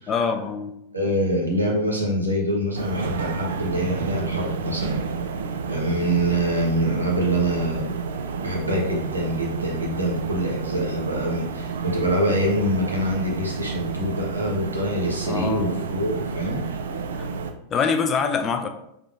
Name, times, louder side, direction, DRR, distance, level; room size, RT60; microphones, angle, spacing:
voice 1, 0.1-0.8 15.3-15.9 17.2-17.3 17.7-18.7, left 5 dB, 25° left, 7 dB, 0.4 m, -25 dB
voice 2, 0.9-5.0 5.6-8.0 8.3-16.6, right 1 dB, 80° right, -1 dB, 0.9 m, -25 dB
sound 1, 2.8-17.5, right 5 dB, 65° right, 0.3 m, -30 dB
3.5 x 3.4 x 2.5 m, 0.78 s
figure-of-eight pair, 90°, 0 cm